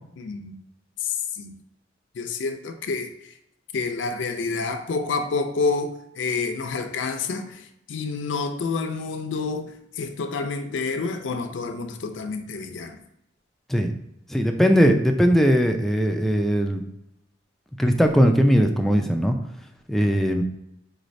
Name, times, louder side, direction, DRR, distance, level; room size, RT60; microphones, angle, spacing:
voice 1, 0.2-0.6 1.0-1.5 2.1-3.3 3.7-13.0, left 4 dB, 75° left, 6 dB, 0.5 m, -28 dB
voice 2, 14.3-16.8 17.8-19.4 19.9-20.4, equal, ahead, 4 dB, 0.3 m, -19 dB
4.8 x 3.2 x 2.6 m, 0.80 s
head